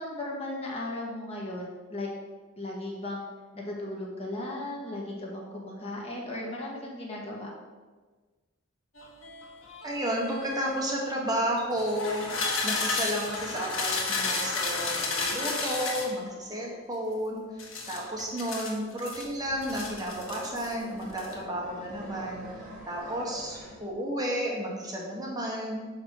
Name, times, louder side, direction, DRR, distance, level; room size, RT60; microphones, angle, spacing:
voice 1, 0.0-2.1 2.6-3.2 3.5-7.5, left 1 dB, 30° left, -2 dB, 1.4 m, -36 dB
sound 1, 9.0-10.9 11.7-16.2 17.6-19.2 19.6-20.7 21.0-21.3, left 3 dB, 80° left, 1.3 m, -32 dB
voice 2, 9.8-12.3 12.6-22.5 22.8-25.8, equal, 20° right, -3 dB, 1.3 m, -32 dB
sound 2, 19.1-23.8, equal, 40° right, 2.0 m, -45 dB
5.2 x 5.0 x 6.4 m, 1.3 s
head